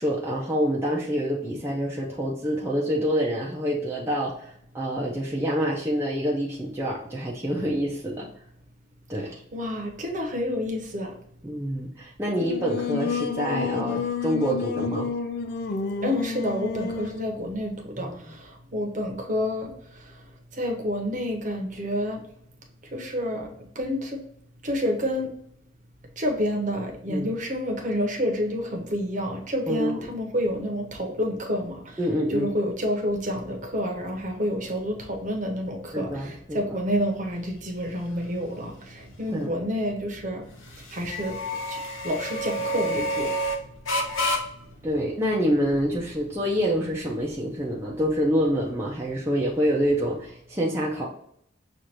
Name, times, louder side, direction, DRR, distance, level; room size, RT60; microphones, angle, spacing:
voice 1, 0.0-8.3 9.1-9.4 11.4-15.1 18.0-18.3 27.1-27.3 29.7-30.1 32.0-32.5 35.9-36.6 39.3-39.5 44.8-51.1, equal, 10° right, -5 dB, 0.5 m, -27 dB
voice 2, 9.5-11.1 16.0-20.1 20.5-22.2 22.9-23.5 23.7-24.2 24.6-25.3 26.2-32.0 32.3-40.4 40.9-41.4 41.7-41.8 42.0-43.3, equal, 40° right, 2 dB, 0.8 m, -29 dB
Singing, 12.4-17.3, left 5 dB, 50° left, 0.3 m, -30 dB
sound 1, 33.1-50.3, equal, 75° left, 0.8 m, -34 dB
6.4 x 2.5 x 2.9 m, 0.69 s
head